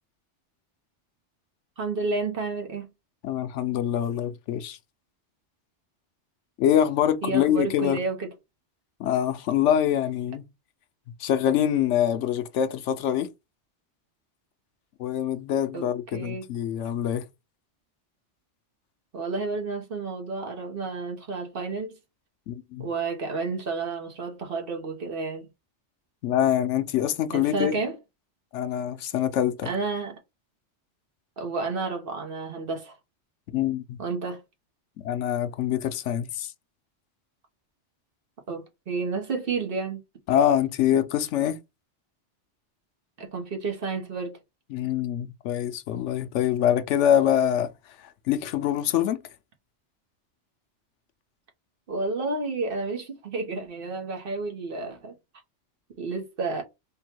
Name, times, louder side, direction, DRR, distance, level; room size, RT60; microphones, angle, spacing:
voice 1, 1.8-2.9 7.2-8.3 15.7-16.4 19.1-21.9 22.8-25.5 27.3-28.0 29.6-30.2 31.4-32.9 34.0-34.4 38.5-40.0 43.2-44.4 51.9-55.1 56.0-56.6, right 3 dB, 55° right, 1.1 m, -31 dB
voice 2, 3.2-4.8 6.6-8.0 9.0-10.4 11.2-13.3 15.0-17.2 22.5-22.9 26.2-27.8 28.5-29.7 33.5-34.0 35.0-36.5 40.3-41.6 44.7-47.7 48.3-49.2, left 10 dB, 90° left, 0.9 m, -24 dB
3.7 x 2.2 x 4.3 m
omnidirectional pair, 1.2 m